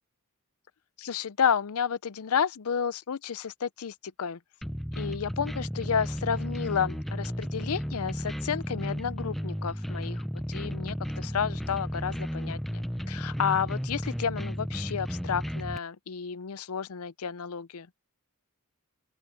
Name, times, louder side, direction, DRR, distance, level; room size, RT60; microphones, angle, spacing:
voice 1, 1.0-4.4 5.0-17.9, left 7 dB, 75° left, 0.6 m, -31 dB
sound 1, 4.6-15.8, equal, ahead, 0.6 m, -34 dB
open air
head